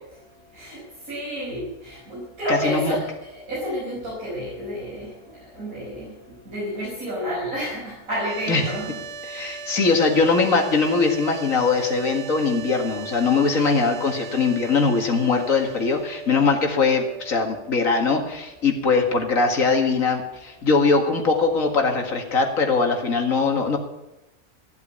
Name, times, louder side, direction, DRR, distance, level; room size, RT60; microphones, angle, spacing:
voice 1, 1.1-5.1 5.5-6.1 6.5-9.0, equal, 75° right, -7 dB, 5.7 m, -30 dB
voice 2, 2.5-3.0 8.5-8.6 9.3-23.8, left 4 dB, 70° left, 3 dB, 2.3 m, -21 dB
sound 1, 8.1-19.2, right 5 dB, 55° right, 1.2 m, -39 dB
15.0 x 8.5 x 8.6 m, 0.92 s
omnidirectional pair, 1.5 m